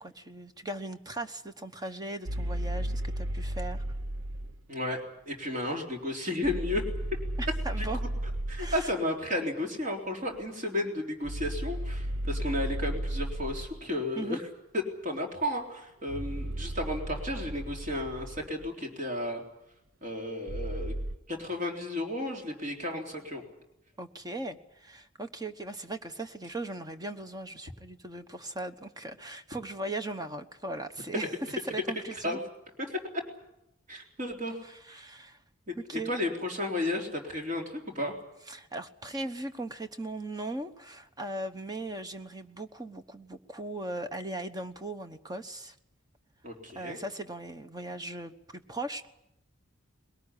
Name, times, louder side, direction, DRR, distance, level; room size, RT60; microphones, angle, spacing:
voice 1, 0.0-3.8 7.4-8.0 8.6-8.9 14.2-14.4 24.0-31.3 31.6-32.4 34.9-35.4 35.8-36.1 38.5-45.7 46.7-49.1, right 2 dB, 20° right, 8 dB, 1.1 m, -38 dB
sound 1, 2.3-4.6 6.4-9.0 11.2-13.8 16.1-18.7 20.5-21.2, right 1 dB, 70° right, 0.8 m, -34 dB
voice 2, 4.7-6.8 7.8-7.9 8.5-14.5 14.7-19.4 20.0-20.9 21.3-23.4 32.2-32.4 32.8-33.0 33.9-35.1 35.7-38.2 46.4-47.0, left 1 dB, 40° right, 1 dB, 3.8 m, -33 dB
21.5 x 18.0 x 9.9 m, 0.84 s
head